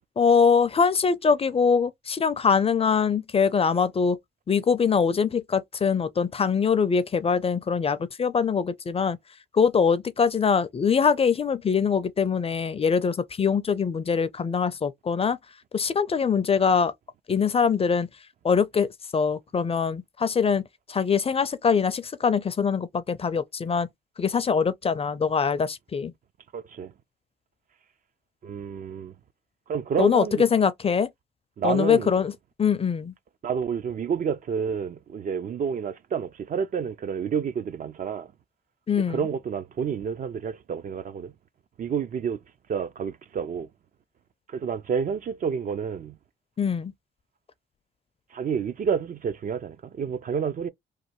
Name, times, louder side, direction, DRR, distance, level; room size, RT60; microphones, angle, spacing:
voice 1, 0.2-4.2 4.5-9.2 9.5-15.4 15.7-16.9 17.3-18.1 18.4-20.6 20.9-23.9 24.2-26.1 30.0-31.1 31.6-32.3 32.6-33.1 38.9-39.2 46.6-46.9, left 6 dB, 30° left, 0.4 m, -23 dB
voice 2, 26.5-26.9 28.4-29.1 29.7-30.4 31.6-32.2 33.4-38.3 39.1-41.3 41.8-42.4 42.7-43.7 44.5-46.2 48.3-50.7, right 7 dB, 45° right, 0.4 m, -29 dB
3.1 x 2.2 x 3.0 m
cardioid pair, 90°, 20 cm